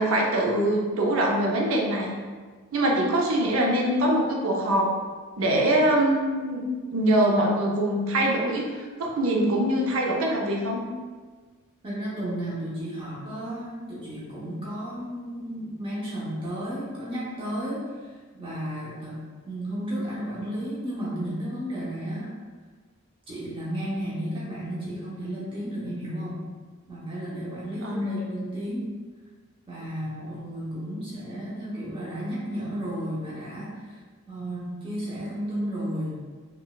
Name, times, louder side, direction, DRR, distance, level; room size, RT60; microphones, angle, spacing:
voice 1, 0.0-2.1 2.7-4.9 5.4-6.6 6.9-10.8 27.8-28.2, right 1 dB, 85° right, 0 dB, 0.5 m, -23 dB
voice 2, 11.8-17.9 18.4-22.3 23.3-26.4 26.9-28.9 29.7-34.0 34.3-36.2, equal, 25° right, -8 dB, 0.7 m, -33 dB
3.7 x 2.3 x 2.3 m, 1.5 s
head